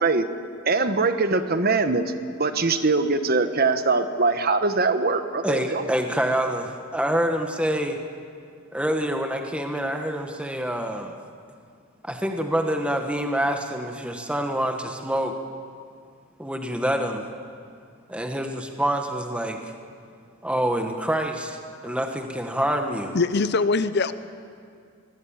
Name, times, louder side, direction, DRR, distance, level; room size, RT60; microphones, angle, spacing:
voice 1, 0.6-2.1 2.4-5.9, right 3 dB, 45° right, 9 dB, 1.3 m, -22 dB
voice 2, 5.4-8.0 8.7-11.2 12.0-15.3 16.4-17.2 18.1-19.7 20.4-21.6 21.8-23.2, right 1 dB, 5° right, 4 dB, 1.3 m, -26 dB
voice 3, 23.1-24.1, left 3 dB, 55° left, 13 dB, 0.7 m, -22 dB
24.0 x 20.5 x 8.7 m, 2.3 s
head